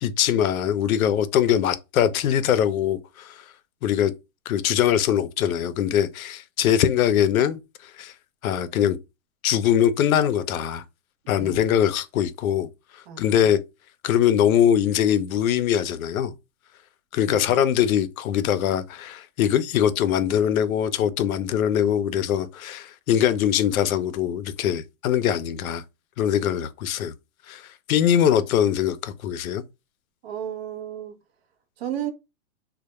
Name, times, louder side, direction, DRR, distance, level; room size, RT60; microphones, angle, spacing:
voice 1, 0.0-3.3 3.8-4.1 4.5-7.6 8.0-8.1 8.4-9.0 9.4-10.8 11.3-12.7 13.2-13.6 14.0-16.3 17.1-25.8 26.2-27.1 27.5-27.6 27.9-29.6, left 10 dB, 85° left, 0.5 m, -22 dB
voice 2, 13.1-13.5 17.3-17.6 28.3-28.4 30.2-31.2 31.8-32.1, right 10 dB, 50° right, 0.5 m, -33 dB
2.1 x 2.1 x 2.9 m
hypercardioid pair, 150°, 41 cm